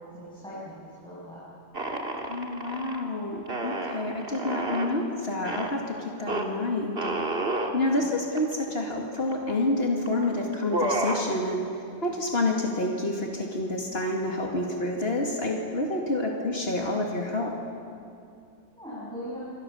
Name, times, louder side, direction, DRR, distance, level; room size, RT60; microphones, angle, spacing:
voice 1, 0.1-1.4 18.8-19.4, equal, 5° left, -10 dB, 7.7 m, -40 dB
sound 1, 1.7-3.0 3.5-5.0 5.4-5.7 6.3-6.5 7.0-7.7 8.4-8.5 8.7-9.4 10.1-10.2 10.5-11.3, right 2 dB, 65° right, 2.3 m, -30 dB
voice 2, 2.3-7.0 7.7-17.6, left 2 dB, 65° left, 0 dB, 2.6 m, -28 dB
26.5 x 26.0 x 7.1 m, 2.6 s
omnidirectional pair, 1.1 m